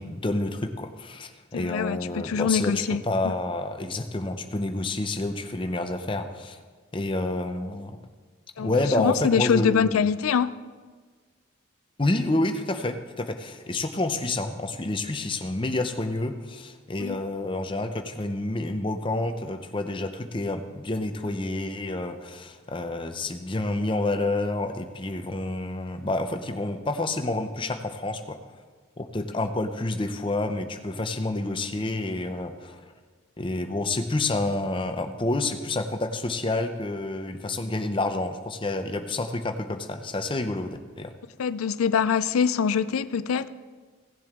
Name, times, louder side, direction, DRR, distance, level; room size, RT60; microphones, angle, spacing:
voice 1, 0.0-2.7 3.0-6.6 6.9-8.0 8.6-10.1 12.0-28.4 29.0-32.9 33.4-41.1, left 2 dB, 25° left, 0.6 m, -29 dB
voice 2, 1.5-3.3 8.6-8.7 9.0-10.5 17.0-17.2 41.4-43.5, left 6 dB, 90° left, 0.4 m, -24 dB
16.5 x 7.5 x 3.7 m
head